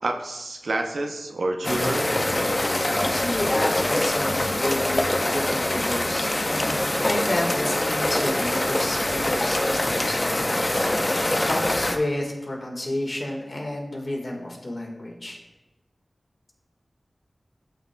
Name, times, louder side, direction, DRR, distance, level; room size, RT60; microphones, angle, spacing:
voice 1, 0.0-2.1, right 2 dB, 85° right, 4 dB, 0.6 m, -28 dB
sound 1, 1.6-12.0, left 1 dB, 35° left, 0.6 m, -24 dB
voice 2, 2.7-5.0 5.3-15.4, left 1 dB, 55° left, 0 dB, 1.5 m, -31 dB
12.0 x 5.6 x 2.2 m, 1.1 s
wide cardioid pair, 55°, 0 cm